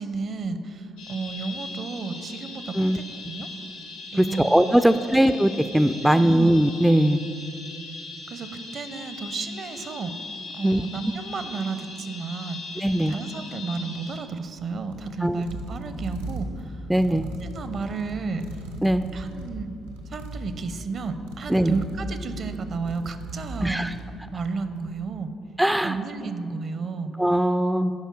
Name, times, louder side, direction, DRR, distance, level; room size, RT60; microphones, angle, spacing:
voice 1, 0.0-3.5 4.1-5.3 6.0-6.4 8.3-10.1 10.5-16.8 17.1-18.6 19.1-19.7 20.1-23.9 24.3-25.3 25.8-27.1, right 4 dB, 50° right, 10 dB, 0.6 m, -33 dB
sound 1, 1.0-14.2, left 3 dB, 75° left, 1.7 m, -39 dB
voice 2, 4.2-7.2 10.6-10.8 12.8-13.1 15.2-15.4 16.9-17.2 18.8-19.0 21.5-21.8 23.6-23.9 25.6-26.0 27.2-27.9, right 1 dB, 5° right, 11 dB, 0.3 m, -20 dB
sound 2, 14.1-24.7, right 1 dB, 90° right, 0.8 m, -38 dB
9.7 x 5.4 x 6.2 m, 2.5 s
figure-of-eight pair, 45°, 0 cm